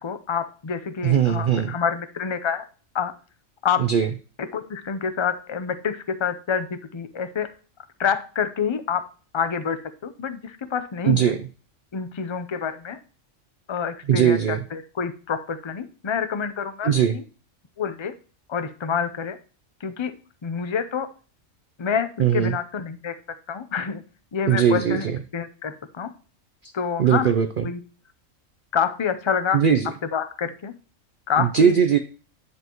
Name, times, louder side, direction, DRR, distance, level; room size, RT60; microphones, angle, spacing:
voice 1, 0.0-2.6 2.9-3.1 3.6-3.8 4.4-7.5 8.0-9.1 9.3-11.3 11.9-13.0 13.7-17.2 17.8-18.1 18.5-19.4 19.8-20.1 20.4-21.1 21.8-23.2 23.5-24.0 24.3-25.1 25.3-26.1 26.7-27.3 27.6-27.8 28.7-29.6 30.1-30.7 31.3-31.8, left 7 dB, 35° left, 11 dB, 0.5 m, -27 dB
voice 2, 1.0-1.7 3.8-4.1 11.0-11.5 14.1-14.6 16.8-17.2 22.2-22.5 24.4-25.2 26.6-26.7 27.0-27.7 29.5-29.9 31.4-32.0, right 8 dB, 55° right, 8 dB, 0.6 m, -20 dB
10.0 x 5.4 x 3.0 m, 0.37 s
omnidirectional pair, 1.3 m